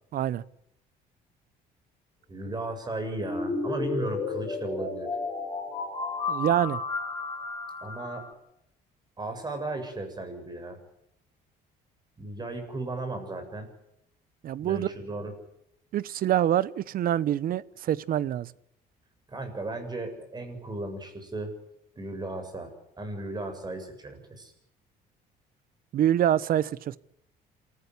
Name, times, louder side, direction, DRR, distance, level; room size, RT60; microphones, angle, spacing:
voice 1, 0.1-0.4 6.3-6.8 14.4-14.9 15.9-18.5 25.9-27.0, right 11 dB, 60° right, 20 dB, 0.9 m, -25 dB
voice 2, 2.3-5.1 7.8-8.3 9.2-10.8 12.2-13.7 14.6-15.3 19.3-21.5 22.0-24.5, right 2 dB, 25° right, 7 dB, 7.3 m, -35 dB
sound 1, 3.2-8.3, left 4 dB, 20° left, 7.0 m, -32 dB
27.0 x 14.5 x 9.8 m, 0.79 s
cardioid pair, 110°, 17 cm